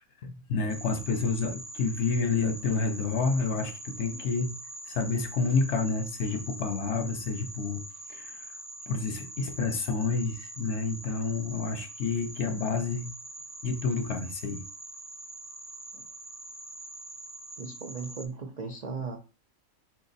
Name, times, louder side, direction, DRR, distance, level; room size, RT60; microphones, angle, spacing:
voice 1, 0.2-4.5 4.9-7.8 8.1-8.4 8.9-13.1 13.6-14.6, left 4 dB, 60° left, 0.8 m, -29 dB
sound 1, 0.7-18.3, right 1 dB, 5° left, 0.3 m, -44 dB
voice 2, 17.6-19.2, right 4 dB, 85° right, 0.3 m, -37 dB
4.8 x 2.6 x 3.9 m
omnidirectional pair, 1.5 m